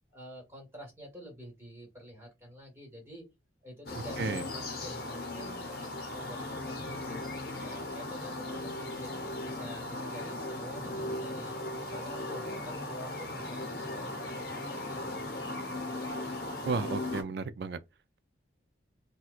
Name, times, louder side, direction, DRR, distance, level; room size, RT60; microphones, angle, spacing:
voice 1, 0.1-3.3 3.6-11.6 11.9-15.5, equal, 15° right, 1.4 m, -48 dB
sound 1, 3.9-17.2, left 2 dB, 55° left, 0.8 m, -37 dB
voice 2, 16.6-17.8, right 4 dB, 60° right, 0.3 m, -33 dB
4.3 x 2.2 x 2.3 m
head